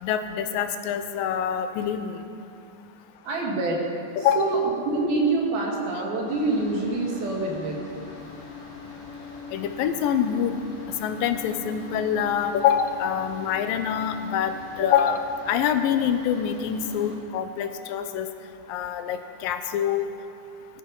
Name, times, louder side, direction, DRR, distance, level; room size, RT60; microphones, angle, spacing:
voice 1, 0.0-2.2 4.2-4.5 9.5-10.5 11.0-18.3 18.7-20.1, left 8 dB, 80° left, 9 dB, 2.4 m, -25 dB
voice 2, 3.2-3.9 4.2-7.8, right 3 dB, 90° right, -1 dB, 4.0 m, -26 dB
sound 1, 6.3-17.2, left 4 dB, 45° left, 3.5 m, -41 dB
19.0 x 13.5 x 5.4 m, 2.5 s
omnidirectional pair, 4.1 m